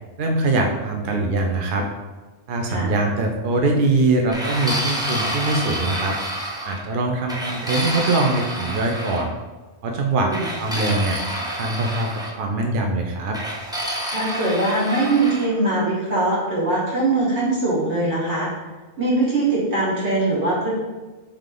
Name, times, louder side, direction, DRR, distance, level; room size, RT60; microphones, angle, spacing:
voice 1, 0.2-1.8 2.5-6.2 6.6-9.3 9.8-13.4, right 2 dB, 60° right, 1 dB, 0.6 m, -22 dB
sound 1, 4.3-6.8 7.3-9.2 10.3-12.3 13.3-15.5, right 1 dB, 5° right, 0.4 m, -28 dB
voice 2, 14.1-18.5 19.0-20.7, right 2 dB, 75° right, -7 dB, 1.8 m, -21 dB
3.6 x 3.3 x 3.7 m, 1.3 s
omnidirectional pair, 1.2 m